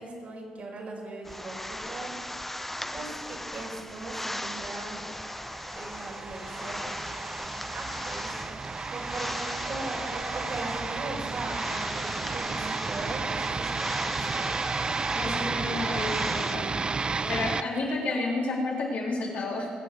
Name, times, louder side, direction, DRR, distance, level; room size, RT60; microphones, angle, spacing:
voice 1, 0.0-2.1 2.8-5.0 5.7-6.9 7.7-8.3 8.9-14.5 18.1-18.2, right 2 dB, 50° right, -1 dB, 4.7 m, -39 dB
sound 1, 1.3-16.6, left 1 dB, 5° left, 0.7 m, -38 dB
sound 2, 5.1-17.6, right 4 dB, 30° right, 0.5 m, -32 dB
voice 2, 15.1-16.7 17.3-19.7, left 2 dB, 65° left, -3 dB, 3.5 m, -30 dB
20.5 x 7.5 x 6.8 m, 2.1 s
cardioid pair, 75°, 3 cm